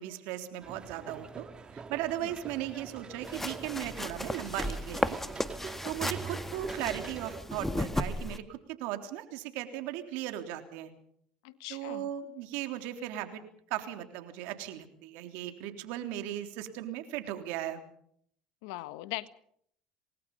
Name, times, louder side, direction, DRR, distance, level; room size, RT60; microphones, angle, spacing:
voice 1, 0.0-1.5 1.7-5.2 5.8-10.9 11.7-13.4 13.7-17.8, right 13 dB, 75° right, 7 dB, 3.5 m, -37 dB
sound 1, 0.6-7.4, right 5 dB, 30° right, 2.2 m, -43 dB
sound 2, 3.2-8.4, left 1 dB, 10° left, 1.8 m, -35 dB
voice 2, 11.4-12.1 18.6-19.3, left 18 dB, 80° left, 13 dB, 1.5 m, -40 dB
27.5 x 20.0 x 5.5 m, 0.65 s
supercardioid pair, 85°, 3 cm